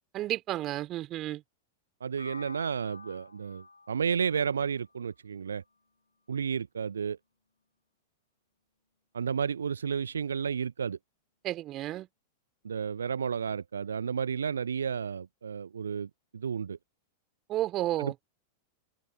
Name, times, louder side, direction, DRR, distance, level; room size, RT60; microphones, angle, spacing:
voice 1, 0.1-1.4 11.4-12.1 17.5-18.1, right 14 dB, 35° right, 2.8 m, -32 dB
voice 2, 2.0-5.6 6.3-7.2 9.1-11.0 12.6-16.8 18.0-18.2, right 6 dB, 70° right, 0.8 m, -32 dB
sound 1, 2.2-6.1, left 3 dB, 80° left, 6.2 m, -51 dB
open air
figure-of-eight pair, 90°, 0 cm